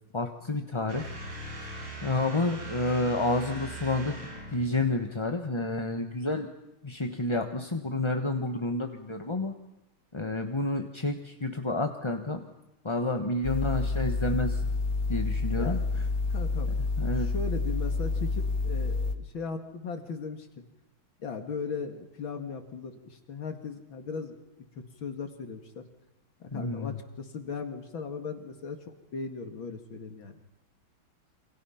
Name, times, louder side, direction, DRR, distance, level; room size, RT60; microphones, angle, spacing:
voice 1, 0.1-1.1 2.0-4.2 4.5-6.5 6.8-9.5 10.1-12.4 12.8-14.6 15.1-15.8 17.0-17.3 26.5-26.9, left 2 dB, 20° left, 5 dB, 1.0 m, -29 dB
sound 1, 0.9-4.8, right 2 dB, 85° right, 5.7 m, -40 dB
sound 2, 13.4-19.2, left 3 dB, 45° left, 1.9 m, -29 dB
voice 2, 15.6-16.0 16.3-16.8 17.0-20.6 21.2-25.8 26.4-30.4, left 5 dB, 70° left, 6 dB, 2.8 m, -38 dB
28.5 x 26.0 x 5.8 m, 0.95 s
omnidirectional pair, 2.2 m